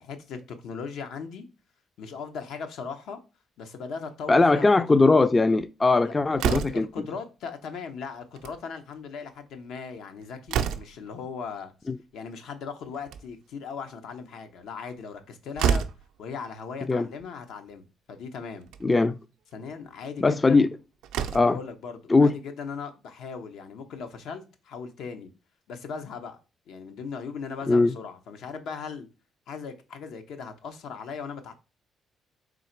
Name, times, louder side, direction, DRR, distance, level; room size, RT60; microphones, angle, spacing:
voice 1, 0.0-1.5 2.0-3.2 3.6-4.7 4.9-5.0 6.0-11.7 12.1-15.8 16.2-18.7 19.5-20.7 21.4-25.3 25.7-26.4 26.7-29.1 29.5-31.5, left 5 dB, 80° left, 0.7 m, -38 dB
voice 2, 4.3-6.9 11.9-12.0 16.9-17.1 18.8-19.2 20.2-20.7 21.3-21.6 22.1-22.4 27.7-27.9, left 3 dB, 25° left, 0.3 m, -20 dB
Slam, 6.4-7.0 8.2-8.6 8.9-9.0 9.3-9.4 9.9-11.1 12.8-13.5 15.1-15.2 15.6-16.1 17.2-17.3 17.7-17.8 18.6-18.8 20.5-20.6 21.0-21.6, right 7 dB, 90° right, 0.4 m, -28 dB
3.8 x 2.9 x 4.4 m
cardioid pair, 90°, 0 cm